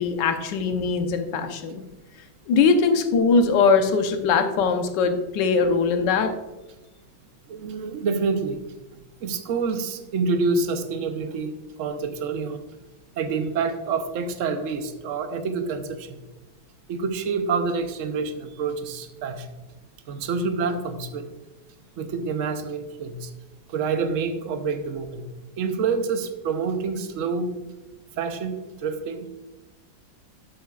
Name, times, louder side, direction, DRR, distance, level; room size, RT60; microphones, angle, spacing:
voice 1, 0.0-1.8 2.5-6.3, left 4 dB, 65° left, 6 dB, 1.4 m, -21 dB
voice 2, 7.5-8.6 9.2-12.6 13.2-16.2 16.9-19.5 20.1-21.3 22.0-23.3 23.7-25.2 25.6-27.5 28.2-29.3, right 4 dB, 60° right, 8 dB, 0.8 m, -27 dB
13.0 x 7.9 x 2.4 m, 1.1 s
omnidirectional pair, 2.2 m